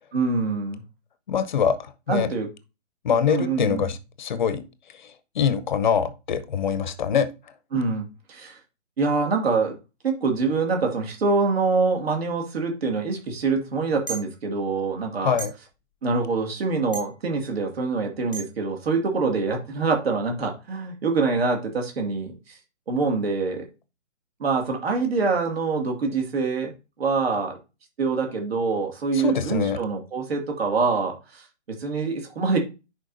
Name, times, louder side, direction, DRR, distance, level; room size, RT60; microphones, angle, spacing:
voice 1, 0.1-0.8 2.1-2.5 3.3-3.9 7.7-8.6 9.0-9.7 10.0-15.4 16.0-22.6 22.9-23.7 24.4-26.7 27.0-27.6 28.0-32.6, right 4 dB, 55° right, 2.2 m, -25 dB
voice 2, 1.3-2.3 3.0-4.6 4.9-7.3 15.2-15.5 29.1-29.8, left 7 dB, 40° left, 0.7 m, -24 dB
sound 1, 14.1-14.3 15.4-15.5 16.9-17.1 18.3-18.4, right 4 dB, 5° right, 1.1 m, -32 dB
10.5 x 4.6 x 2.7 m
hypercardioid pair, 160°, 37 cm